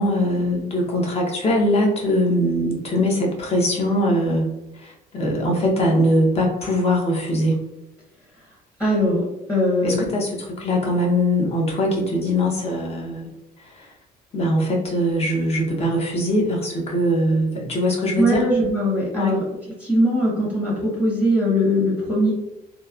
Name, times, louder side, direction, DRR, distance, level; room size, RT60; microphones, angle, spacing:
voice 1, 0.0-4.5 4.8-7.6 9.8-13.3 13.7-13.9 14.3-18.5 19.1-19.4, equal, 40° left, -1 dB, 0.9 m, -21 dB
voice 2, 8.8-10.1 18.2-19.4 19.8-22.3, equal, 15° left, -5 dB, 0.9 m, -20 dB
2.9 x 2.0 x 2.4 m, 0.97 s
cardioid pair, 110°, 17 cm